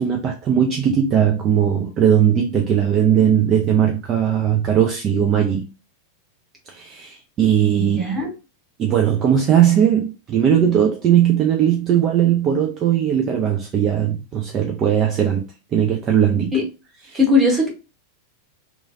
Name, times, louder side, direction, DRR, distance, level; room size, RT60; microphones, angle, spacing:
voice 1, 0.0-5.7 6.7-8.1 8.8-16.5 17.0-17.2, right 9 dB, 30° right, 0.4 m, -18 dB
voice 2, 7.8-8.3 16.5-16.6 17.1-17.7, left 3 dB, 10° right, 1.1 m, -18 dB
3.0 x 2.3 x 2.6 m
figure-of-eight pair, 90°, 0 cm